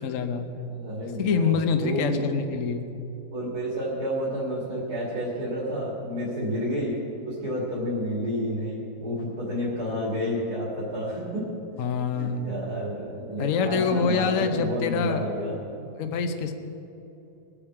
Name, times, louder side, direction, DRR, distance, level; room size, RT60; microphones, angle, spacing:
voice 1, 0.0-0.5 1.2-2.9 11.8-12.4 13.4-15.2 16.0-16.5, left 5 dB, 60° left, 7 dB, 1.1 m, -25 dB
voice 2, 0.7-2.2 3.3-7.0 7.2-11.5 12.1-15.6, equal, 65° right, -6 dB, 3.3 m, -30 dB
21.5 x 8.8 x 4.8 m, 2.9 s
omnidirectional pair, 1.8 m